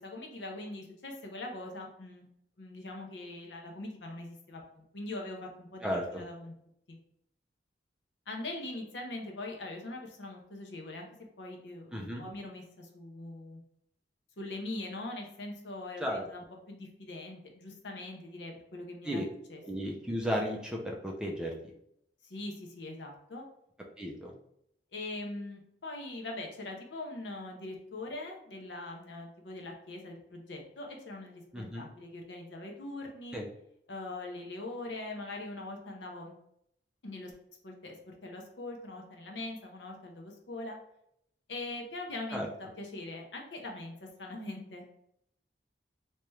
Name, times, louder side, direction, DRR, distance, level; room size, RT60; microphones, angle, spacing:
voice 1, 0.0-2.3 2.6-6.5 6.9-7.0 8.3-11.1 11.4-13.6 14.4-19.2 19.5-19.6 22.2-23.4 24.9-33.4 33.9-36.3 37.0-37.3 37.6-40.8 41.5-44.8, left 2 dB, 75° left, 1 dB, 0.8 m, -42 dB
voice 2, 11.9-12.3 16.0-16.2 19.0-19.2 19.6-21.5 24.0-24.3 31.5-31.9 33.3-33.5 42.3-42.5, equal, 5° right, -1 dB, 0.5 m, -34 dB
3.4 x 2.9 x 3.1 m, 0.74 s
head